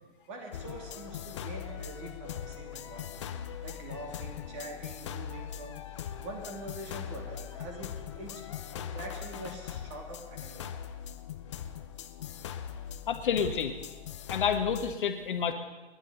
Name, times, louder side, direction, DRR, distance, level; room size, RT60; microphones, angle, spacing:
voice 1, 0.3-3.2 3.6-5.8 6.2-8.4 8.7-10.8, right 1 dB, 30° right, 2 dB, 2.8 m, -44 dB
sound 1, 0.5-15.0, left 9 dB, 25° left, 0.6 m, -41 dB
voice 2, 13.1-13.7 14.3-15.5, left 7 dB, 50° left, 6 dB, 1.4 m, -29 dB
29.5 x 11.0 x 4.0 m, 1.3 s
hypercardioid pair, 155°, 33 cm